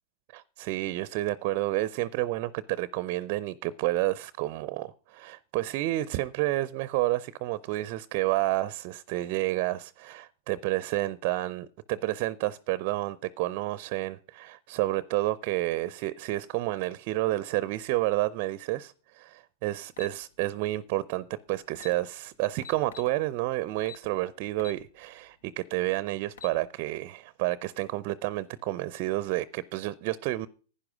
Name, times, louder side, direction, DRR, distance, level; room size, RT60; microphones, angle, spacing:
voice 1, 0.3-30.5, right 17 dB, 45° right, 0.5 m, -30 dB
sound 1, 20.0-20.2 21.4-21.5 21.7-22.0 22.6-23.1 23.8-24.1 24.6-24.8 25.3-25.4 26.1-26.6, left 7 dB, 65° left, 1.0 m, -44 dB
11.0 x 10.0 x 5.0 m
hypercardioid pair, 110°, 0 cm